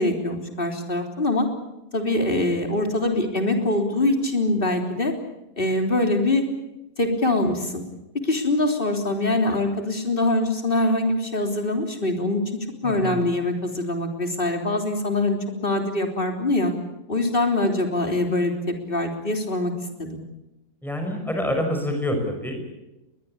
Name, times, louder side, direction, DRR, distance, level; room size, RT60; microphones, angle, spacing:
voice 1, 0.0-1.5 1.9-5.1 5.6-6.4 7.0-7.8 8.2-12.4 12.8-16.7 17.1-18.6 18.9-19.7 20.0-20.2, left 2 dB, 35° left, 4 dB, 3.7 m, -23 dB
voice 2, 12.8-13.2 20.8-22.8, left 1 dB, ahead, 4 dB, 5.6 m, -27 dB
22.0 x 21.0 x 8.7 m, 0.95 s
omnidirectional pair, 1.6 m